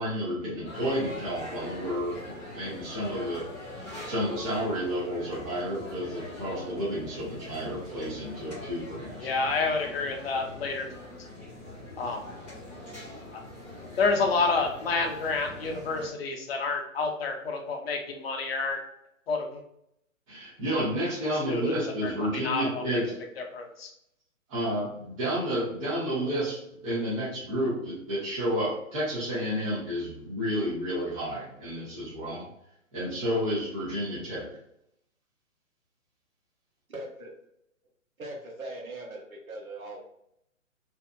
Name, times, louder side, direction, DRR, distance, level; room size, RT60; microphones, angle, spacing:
voice 1, 0.0-3.4 3.8-9.3 20.3-23.1 24.5-32.4 32.9-34.5, equal, 25° right, -7 dB, 0.8 m, -31 dB
sound 1, 0.6-16.1, left 1 dB, 10° right, 0.4 m, -43 dB
voice 2, 9.2-10.9 12.0-12.2 13.3-13.4 14.0-18.8 19.3-19.6 21.5-21.7 22.0-23.0 23.5-23.9, left 4 dB, 50° left, 3 dB, 0.6 m, -29 dB
voice 3, 36.9-37.3 38.2-40.0, right 1 dB, 85° right, -1 dB, 1.0 m, -40 dB
2.7 x 2.4 x 2.3 m, 0.76 s
figure-of-eight pair, 135°, 41 cm